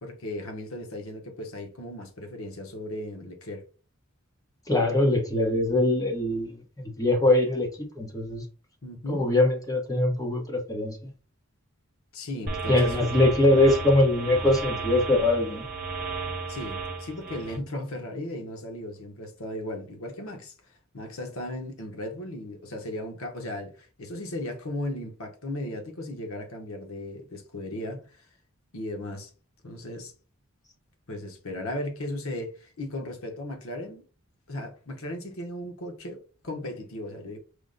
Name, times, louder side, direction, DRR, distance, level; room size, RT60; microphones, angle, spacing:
voice 1, 0.0-3.6 8.8-9.2 12.1-13.0 16.5-20.5 20.9-28.0 28.7-29.3 29.6-30.1 31.1-34.0 34.5-37.4, left 1 dB, 80° left, 0.9 m, -36 dB
voice 2, 4.7-7.7 7.9-8.4 9.1-11.0 12.7-15.6, left 1 dB, 15° left, 0.8 m, -22 dB
sound 1, 12.5-17.6, right 3 dB, 40° right, 1.1 m, -34 dB
4.9 x 2.1 x 3.8 m
head